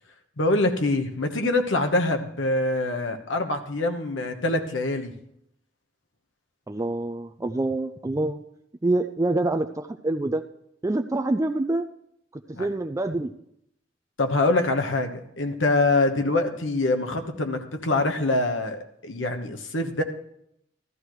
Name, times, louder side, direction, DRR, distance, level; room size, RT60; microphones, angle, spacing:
voice 1, 0.4-5.1 12.5-12.7 14.2-20.0, left 2 dB, 85° left, 6 dB, 1.2 m, -24 dB
voice 2, 6.7-8.4 8.8-10.4 10.8-11.9 12.5-13.3, right 2 dB, 15° right, 6 dB, 0.4 m, -26 dB
14.0 x 13.5 x 3.1 m, 0.74 s
head